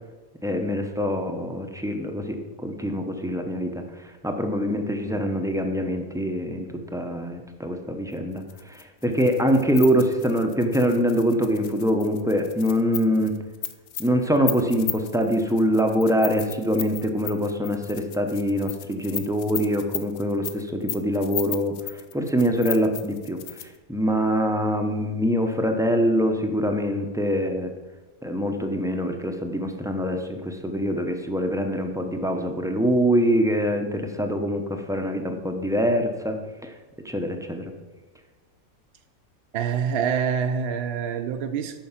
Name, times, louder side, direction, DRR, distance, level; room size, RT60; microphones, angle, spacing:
voice 1, 0.4-3.8 4.2-13.3 14.0-27.7 28.2-36.7 37.0-37.7, equal, 5° right, 4 dB, 0.3 m, -24 dB
sound 1, 8.4-23.8, left 10 dB, 65° left, 0.9 m, -35 dB
voice 2, 39.5-41.8, right 7 dB, 65° right, 7 dB, 0.6 m, -26 dB
9.0 x 5.8 x 5.7 m, 1.2 s
omnidirectional pair, 1.5 m